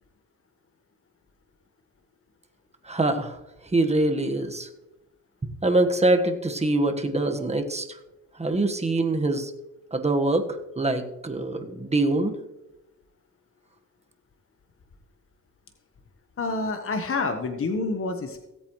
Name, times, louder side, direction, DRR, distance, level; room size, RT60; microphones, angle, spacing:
voice 1, 2.8-3.4 3.7-4.7 5.6-8.0 8.3-9.5 9.9-12.4, right 2 dB, 20° right, 5 dB, 1.5 m, -24 dB
voice 2, 16.4-18.5, left 3 dB, 40° left, 5 dB, 1.3 m, -28 dB
17.5 x 8.1 x 3.2 m, 0.99 s
cardioid pair, 80°, 33 cm